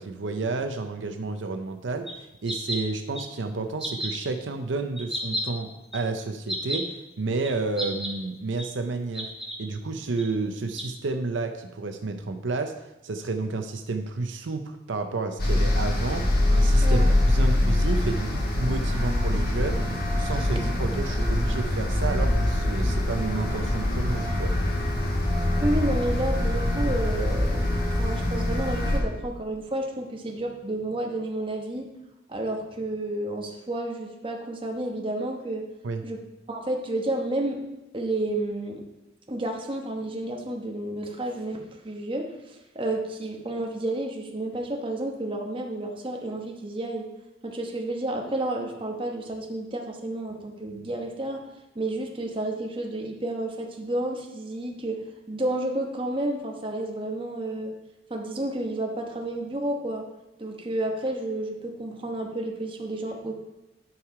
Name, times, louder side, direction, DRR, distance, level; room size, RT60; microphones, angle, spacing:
voice 1, 0.0-9.3 9.6-12.7 13.0-16.2 16.5-24.5 35.8-36.0, right 3 dB, 75° right, 6 dB, 0.6 m, -31 dB
sound 1, 2.1-2.2 2.4-2.8 3.2-3.3 3.8-4.2 5.0-5.4 5.9-6.0 6.5-6.8 7.4-7.5 7.8-8.1 8.6-8.7 9.1-9.6 10.2-10.3 10.7-10.8, equal, ahead, 1.3 m, -31 dB
sound 2, 15.4-29.0, left 1 dB, 50° left, 1.5 m, -24 dB
voice 2, 16.8-17.1 25.6-31.9 32.3-35.7 36.0-36.2 36.5-37.6 37.9-38.8 39.3-47.1 47.4-51.4 51.7-55.0 55.3-57.7 58.1-60.0 60.4-63.3, right 1 dB, 25° right, 1 dB, 1.0 m, -31 dB
10.0 x 4.8 x 4.7 m, 0.98 s
head